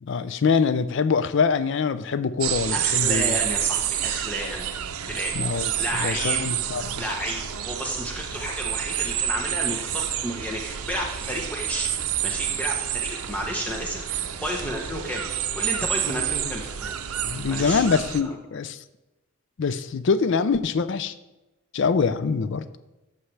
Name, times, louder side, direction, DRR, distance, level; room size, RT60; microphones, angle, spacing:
voice 1, 0.0-3.4 5.3-5.7 6.0-7.0 17.2-18.8 19.6-21.1 21.7-22.7, left 5 dB, 55° left, 13 dB, 0.4 m, -24 dB
sound 1, 2.4-18.2, right 10 dB, 90° right, 0.6 m, -29 dB
voice 2, 2.7-4.6 5.1-6.4 7.0-11.9 12.2-15.2 15.5-17.0 17.5-17.8 18.2-18.3, equal, 5° left, -1 dB, 0.8 m, -31 dB
14.0 x 5.7 x 3.3 m, 1.0 s
head